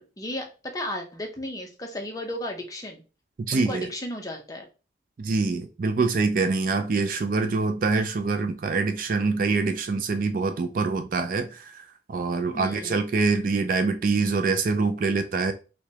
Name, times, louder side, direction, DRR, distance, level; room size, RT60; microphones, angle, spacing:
voice 1, 0.0-3.0 3.5-4.6 12.5-13.1, left 1 dB, 20° left, 0.7 m, -34 dB
voice 2, 3.5-3.9 5.2-11.8 12.1-15.5, right 4 dB, 45° right, 0.4 m, -25 dB
4.7 x 2.2 x 2.8 m
head